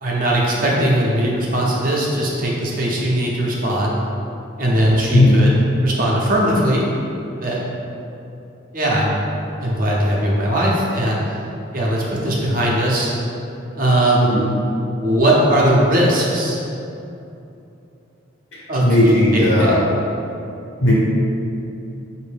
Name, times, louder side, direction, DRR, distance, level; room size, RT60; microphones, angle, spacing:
voice 1, 0.0-3.9 4.6-5.6 5.8-6.8 7.4-7.6 8.7-9.2 9.6-11.2 11.7-13.1 13.7-14.3 14.7-16.6 18.7-19.8, right 1 dB, 45° right, -4 dB, 0.7 m, -19 dB
voice 2, 5.1-5.5 14.2-14.5 18.5-19.8 20.8-20.9, left 1 dB, 65° left, -7 dB, 1.2 m, -16 dB
5.3 x 2.6 x 3.4 m, 2.8 s
head